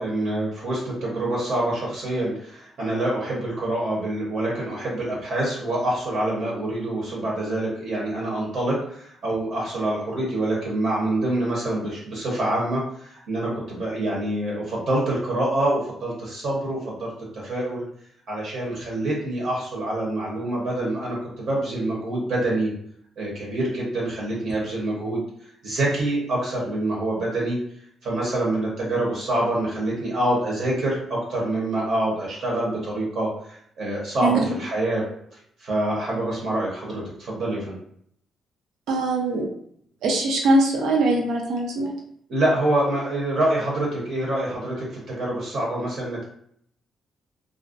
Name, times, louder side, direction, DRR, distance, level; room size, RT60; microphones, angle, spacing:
voice 1, 0.0-17.8 18.3-22.7 23.2-25.2 25.6-27.6 28.0-33.3 33.8-35.0 35.6-37.8 42.3-46.2, right 1 dB, 55° right, -4 dB, 0.8 m, -26 dB
voice 2, 38.9-39.5 40.0-41.9, right 2 dB, 90° right, -1 dB, 0.6 m, -21 dB
2.4 x 2.1 x 2.5 m, 0.66 s
cardioid pair, 175°, 0 cm